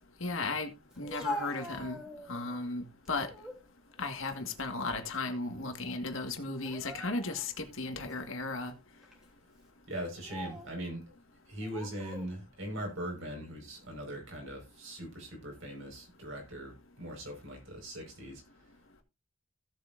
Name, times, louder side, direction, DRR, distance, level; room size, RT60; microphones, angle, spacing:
voice 1, 0.2-0.7 1.0-2.0 2.3-3.3 4.0-8.7, left 3 dB, 60° left, 1.8 m, -35 dB
Speech, 0.9-2.5 3.0-3.6 4.1-5.3 5.5-5.8 6.5-7.5 8.1-8.2 9.0-9.3 10.0-10.7 11.6-12.3, left 1 dB, 5° right, 3.0 m, -43 dB
voice 2, 9.9-11.1 11.5-18.4, right 1 dB, 60° right, 5.3 m, -41 dB
16.5 x 7.9 x 2.6 m
head